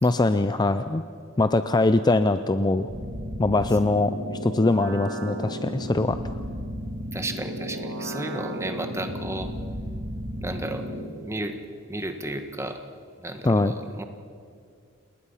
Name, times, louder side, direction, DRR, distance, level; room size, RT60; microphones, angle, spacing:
voice 1, 0.0-1.0 1.4-2.9 3.4-4.1 4.4-6.2 13.4-13.7, left 2 dB, 20° left, 11 dB, 0.5 m, -22 dB
sound 1, 2.9-11.0, equal, 90° right, 3.9 m, -34 dB
voice 2, 7.1-9.5 10.4-10.8 11.2-11.6 11.9-12.8 13.2-14.0, right 1 dB, 15° right, 6 dB, 1.5 m, -33 dB
29.5 x 20.0 x 5.7 m, 2.3 s
head